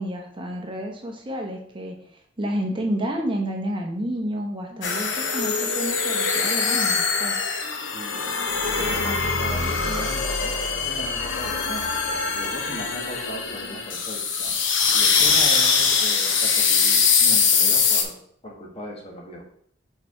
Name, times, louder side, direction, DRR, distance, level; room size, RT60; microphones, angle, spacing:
voice 1, 0.0-2.0 2.4-7.4, equal, 25° right, 1 dB, 0.9 m, -30 dB
sound 1, 4.8-18.0, left 5 dB, 80° left, 0.9 m, -22 dB
voice 2, 7.9-8.3 8.6-14.6 14.9-18.2 18.4-19.4, equal, 30° left, 0 dB, 1.3 m, -37 dB
4.8 x 4.5 x 4.8 m, 0.63 s
head